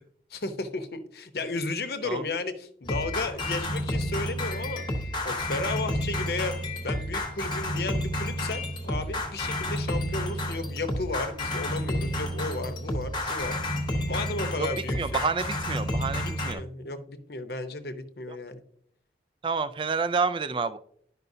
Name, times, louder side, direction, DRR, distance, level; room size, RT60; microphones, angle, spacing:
voice 1, 0.3-4.8 5.2-6.5 6.8-13.5 14.1-15.2 16.1-18.6, left 3 dB, 60° left, 9 dB, 0.8 m, -34 dB
sound 1, 2.8-16.5, left 1 dB, 25° left, 0.9 m, -30 dB
voice 2, 14.9-16.6 18.3-18.4 19.4-20.8, right 4 dB, 25° right, 13 dB, 0.3 m, -29 dB
10.5 x 5.5 x 2.7 m, 0.64 s
head